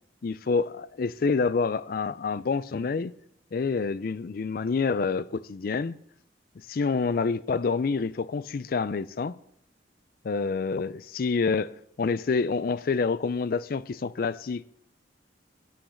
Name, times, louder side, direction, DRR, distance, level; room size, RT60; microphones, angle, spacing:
voice 1, 0.2-3.1 3.5-5.9 6.7-9.4 10.2-14.6, left 4 dB, 55° left, 0.4 m, -27 dB
8.8 x 7.8 x 6.3 m
head